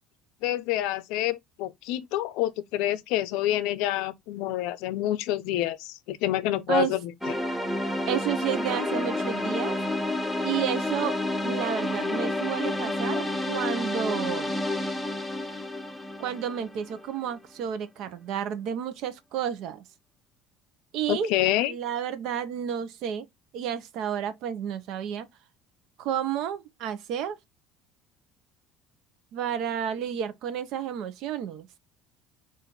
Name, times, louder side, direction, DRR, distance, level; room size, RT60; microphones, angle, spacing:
voice 1, 0.4-7.1 21.1-21.7, left 14 dB, 80° left, 0.5 m, -27 dB
sound 1, 7.2-17.2, left 1 dB, ahead, 0.7 m, -30 dB
voice 2, 8.1-9.8 10.4-11.1 11.4-14.6 16.2-19.8 20.9-21.3 21.7-23.3 23.5-25.3 26.0-27.4 29.3-31.7, right 9 dB, 65° right, 0.7 m, -31 dB
4.2 x 2.5 x 3.8 m
cardioid pair, 130°, 0 cm